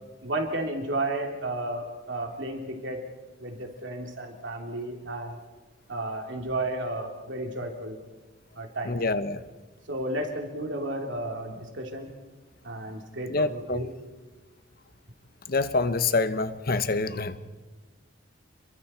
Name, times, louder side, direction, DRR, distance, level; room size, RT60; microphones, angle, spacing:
voice 1, 0.2-3.0 3.4-5.4 5.9-8.0 8.5-8.9 9.9-12.1 12.6-13.9, right 1 dB, 65° right, 3 dB, 2.9 m, -32 dB
voice 2, 8.9-9.4 13.3-13.8 15.5-17.4, left 3 dB, 50° left, 13 dB, 0.9 m, -26 dB
29.5 x 23.0 x 4.4 m, 1.3 s
head